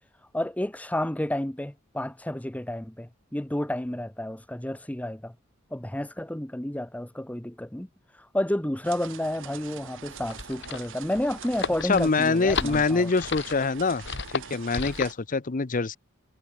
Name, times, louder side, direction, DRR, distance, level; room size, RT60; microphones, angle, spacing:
voice 1, 0.3-5.3 5.7-7.9 8.2-13.1, left 1 dB, 5° left, 0.9 m, -31 dB
sound 1, 8.8-15.1, right 8 dB, 65° right, 0.9 m, -44 dB
sound 2, 10.0-15.2, left 5 dB, 55° left, 1.6 m, -34 dB
voice 2, 11.9-14.0 14.3-16.0, left 4 dB, 40° left, 0.7 m, -24 dB
head